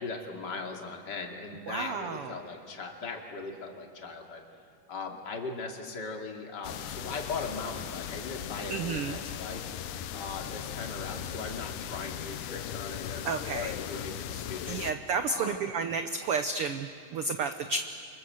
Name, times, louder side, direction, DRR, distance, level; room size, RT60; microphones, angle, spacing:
voice 1, 0.0-4.4 4.9-9.6 10.1-14.8 15.3-15.6, left 4 dB, 35° left, 2 dB, 2.7 m, -39 dB
voice 2, 1.7-2.3 8.7-9.2 13.2-13.7 14.7-17.8, right 5 dB, 80° right, 8 dB, 1.2 m, -31 dB
sound 1, 6.6-14.9, left 10 dB, 75° left, 2.3 m, -38 dB
28.5 x 25.5 x 7.7 m, 2.3 s
omnidirectional pair, 3.8 m